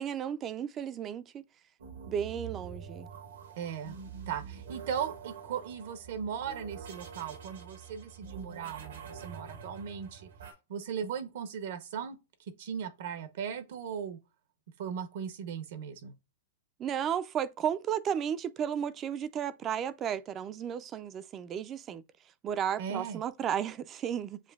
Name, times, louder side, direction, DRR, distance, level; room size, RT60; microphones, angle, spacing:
voice 1, 0.0-1.4 2.1-3.1 16.8-22.0 22.4-24.4, right 9 dB, 25° right, 0.3 m, -33 dB
sound 1, 1.8-10.5, right 7 dB, 85° right, 1.3 m, -46 dB
voice 2, 3.6-3.9 4.3-10.3 10.7-12.2 12.6-14.2 14.8-16.1 22.8-23.2, right 7 dB, 65° right, 0.7 m, -38 dB
7.2 x 2.5 x 2.3 m
hypercardioid pair, 145°, 0 cm